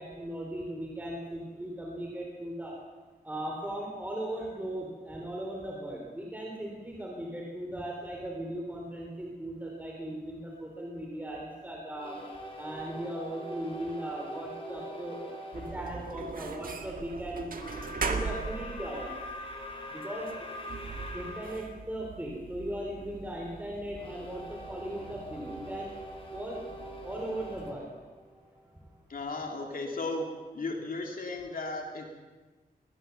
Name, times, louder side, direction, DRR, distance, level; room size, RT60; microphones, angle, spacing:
voice 1, 0.0-2.7 3.2-12.2 12.6-17.5 18.0-19.1 19.9-20.3 21.1-26.0 26.3-26.7 27.0-27.8, right 1 dB, 10° right, -1 dB, 3.6 m, -38 dB
sound 1, 11.9-15.8 17.5-21.6 24.0-28.8, equal, 35° left, 4.7 m, -43 dB
sound 2, 15.5-27.7, right 4 dB, 65° right, 1.9 m, -41 dB
voice 2, 29.1-30.3 30.5-32.0, left 2 dB, 65° left, 2 dB, 2.9 m, -35 dB
22.0 x 19.5 x 7.0 m, 1.3 s
wide cardioid pair, 140°, 16 cm